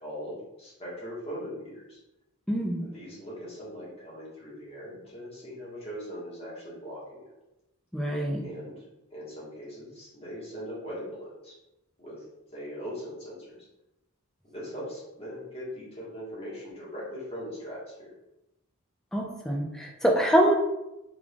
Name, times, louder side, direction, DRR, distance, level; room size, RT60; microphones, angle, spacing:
voice 1, 0.0-2.0 2.8-7.2 8.4-8.7 9.1-11.6 12.0-12.2 12.5-13.6 14.4-18.1, equal, 25° left, -7 dB, 1.4 m, -40 dB
voice 2, 2.5-2.9 7.9-8.4 19.1-20.6, right 1 dB, ahead, 0 dB, 0.4 m, -25 dB
3.6 x 3.4 x 2.3 m, 0.92 s
head